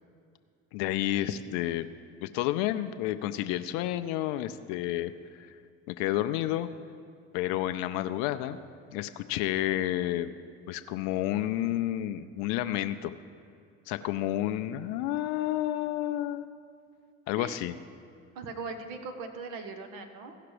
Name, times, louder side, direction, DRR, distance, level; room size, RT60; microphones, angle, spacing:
voice 1, 0.7-1.9 2.2-5.1 5.4-5.5 5.9-6.7 7.3-8.6 8.9-10.3 10.7-13.1 13.9-16.5 17.3-17.7, left 13 dB, 65° left, 10 dB, 0.5 m, -30 dB
voice 2, 18.3-20.4, right 4 dB, 65° right, 7 dB, 1.2 m, -39 dB
16.0 x 5.8 x 4.9 m, 2.4 s
hypercardioid pair, 60°, 36 cm